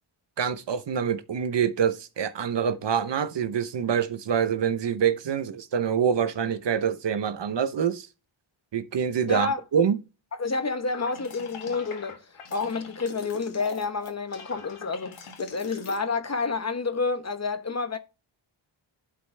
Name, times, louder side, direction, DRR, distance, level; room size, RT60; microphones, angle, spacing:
voice 1, 0.4-8.1 8.7-10.0, right 7 dB, 60° right, 0.9 m, -26 dB
voice 2, 9.3-9.6 10.3-18.0, left 4 dB, 35° left, 1.0 m, -29 dB
sound 1, 10.9-16.0, left 4 dB, 90° left, 2.3 m, -42 dB
11.5 x 5.4 x 3.3 m
wide cardioid pair, 160°, 48 cm